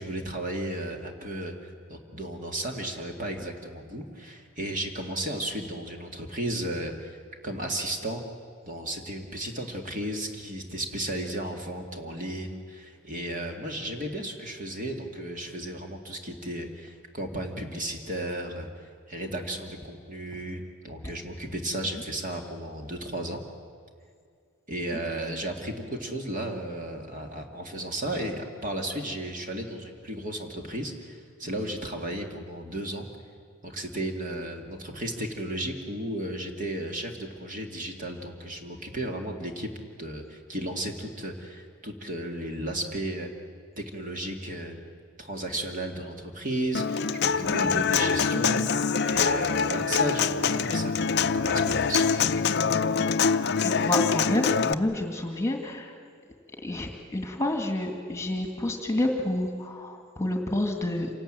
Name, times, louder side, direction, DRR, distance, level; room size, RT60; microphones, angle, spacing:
voice 1, 0.0-7.2 7.4-8.2 8.7-23.4 24.7-33.1 33.6-39.7 40.0-43.3 43.8-44.8 45.2-52.3, right 1 dB, 35° right, 3 dB, 2.2 m, -34 dB
Human voice / Acoustic guitar, 46.7-54.7, left 5 dB, 50° left, 0.6 m, -25 dB
voice 2, 47.6-48.1 53.6-55.9 56.6-61.1, left 1 dB, 15° left, 3 dB, 2.1 m, -29 dB
27.0 x 19.0 x 8.9 m, 2.2 s
head